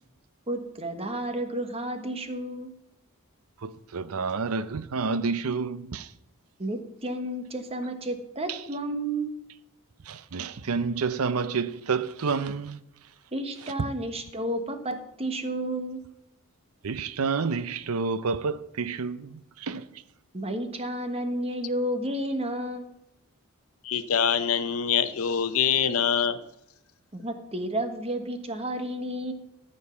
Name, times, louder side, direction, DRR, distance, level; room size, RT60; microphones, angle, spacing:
voice 1, 0.5-2.7 6.6-9.3 13.3-16.0 20.3-22.9 27.1-29.3, right 1 dB, 25° right, 1.3 m, -31 dB
voice 2, 3.6-6.1 8.5-8.6 10.0-12.8 13.6-13.9 16.8-20.0, right 5 dB, 75° right, 0.6 m, -29 dB
voice 3, 23.8-26.4, left 7 dB, 65° left, 0.8 m, -24 dB
14.0 x 5.4 x 7.1 m
head